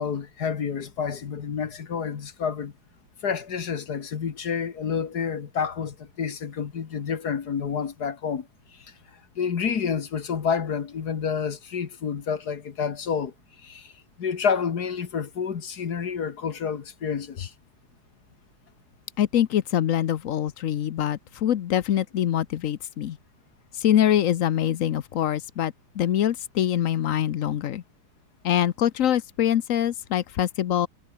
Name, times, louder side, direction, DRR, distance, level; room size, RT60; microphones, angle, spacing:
voice 1, 0.0-2.7 3.2-8.5 8.7-8.9 9.4-13.3 13.6-13.9 14.2-17.5, left 6 dB, 50° left, 1.9 m, -29 dB
voice 2, 19.2-23.2 23.8-27.8 28.4-30.9, left 11 dB, 90° left, 0.7 m, -24 dB
omnidirectional pair, 2.4 m